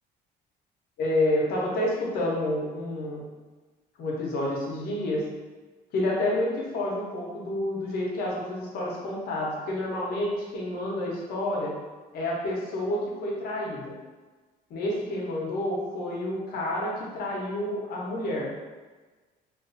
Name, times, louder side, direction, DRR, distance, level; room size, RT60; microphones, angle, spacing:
voice 1, 1.0-3.3 4.0-5.2 5.9-11.7 12.1-13.9 14.7-18.5, left 1 dB, 65° left, -3 dB, 0.8 m, -29 dB
2.4 x 2.3 x 2.5 m, 1.3 s
cardioid pair, 110°, 17 cm